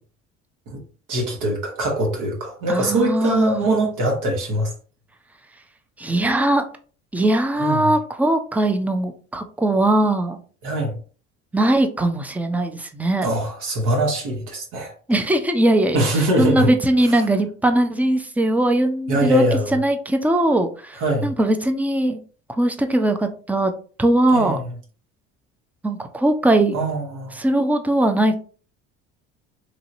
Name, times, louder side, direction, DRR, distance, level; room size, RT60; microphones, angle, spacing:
voice 1, 1.1-4.7 7.6-7.8 10.6-10.9 13.2-14.9 15.9-16.7 17.1-17.2 19.1-19.8 21.0-21.3 24.3-24.6 26.7-27.4, right 1 dB, 60° right, 1.0 m, -22 dB
voice 2, 2.7-3.7 6.0-6.7 7.1-10.4 11.5-13.3 15.1-16.0 16.4-19.4 19.7-22.2 22.6-23.7 24.0-24.6 25.8-26.8 27.3-28.4, right 1 dB, 5° right, 0.4 m, -20 dB
3.1 x 2.7 x 2.5 m
hypercardioid pair, 60°, 35 cm